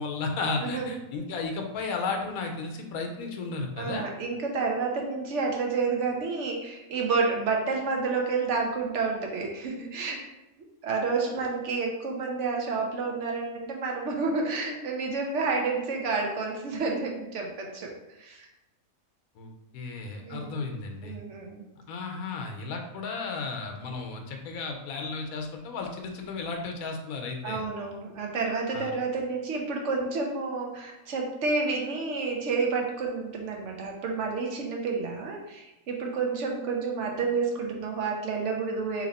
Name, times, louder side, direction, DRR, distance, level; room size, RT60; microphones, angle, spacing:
voice 1, 0.0-4.0 19.3-21.2 21.9-27.6 28.7-28.9, left 4 dB, 85° left, 3 dB, 1.1 m, -34 dB
voice 2, 3.8-10.3 10.8-17.9 18.2-18.5 20.2-20.6 21.0-21.6 27.4-39.1, right 4 dB, 65° right, 0 dB, 0.9 m, -30 dB
2.9 x 2.8 x 4.0 m, 0.96 s
omnidirectional pair, 1.5 m